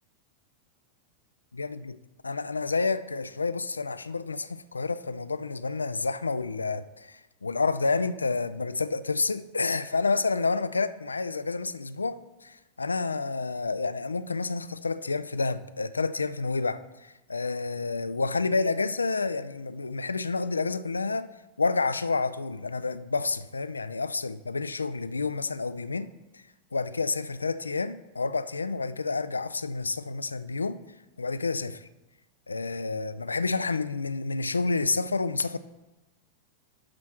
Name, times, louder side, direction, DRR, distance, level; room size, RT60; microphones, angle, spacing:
voice 1, 1.5-2.0 2.2-16.8 17.3-21.3 21.6-26.1 26.3-26.4 26.7-30.8 31.2-31.9 32.5-35.6, left 4 dB, 80° left, 0.4 m, -29 dB
11.0 x 4.3 x 6.1 m
figure-of-eight pair, 90°, 0 cm